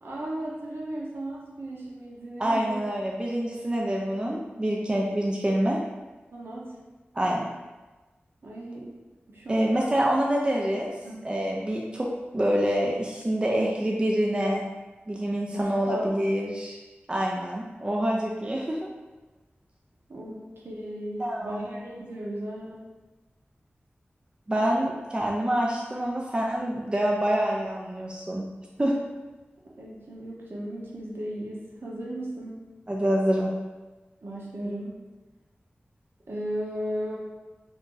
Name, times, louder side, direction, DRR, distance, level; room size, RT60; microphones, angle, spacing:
voice 1, 0.0-2.8 6.3-6.7 8.4-8.9 9.3-10.0 11.0-11.2 15.5-16.1 20.1-22.9 29.8-32.6 34.2-35.0 36.3-37.2, right 1 dB, 70° right, -4 dB, 0.7 m, -36 dB
voice 2, 2.4-5.8 7.1-7.5 9.5-10.9 11.2-12.1 12.3-14.6 15.1-16.8 17.1-18.9 21.2-21.7 24.5-28.4 28.8-28.9 32.9-33.5, right 1 dB, 25° right, -2 dB, 0.4 m, -26 dB
2.6 x 2.5 x 3.7 m, 1.2 s
wide cardioid pair, 80°, 4 cm